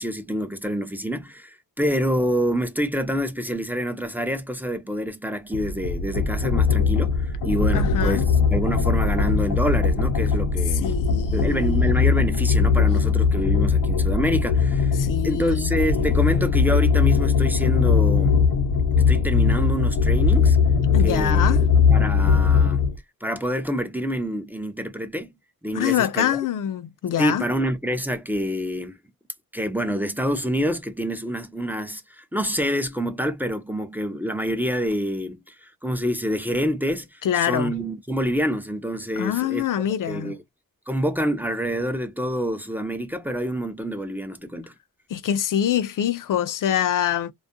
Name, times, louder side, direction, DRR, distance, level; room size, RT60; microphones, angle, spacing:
voice 1, 0.0-10.9 11.3-15.0 15.2-18.4 19.1-20.6 21.0-22.8 23.2-25.3 25.6-26.4 27.2-28.9 29.5-40.4 40.9-44.7, equal, 5° right, 0.4 m, -27 dB
sound 1, 5.5-23.0, left 5 dB, 85° left, 0.8 m, -20 dB
voice 2, 7.7-8.3 10.7-12.2 15.0-15.7 20.9-21.6 25.7-27.5 37.2-37.7 39.2-40.3 45.1-47.3, left 10 dB, 60° left, 0.5 m, -25 dB
2.3 x 2.1 x 2.6 m
wide cardioid pair, 120°, 36 cm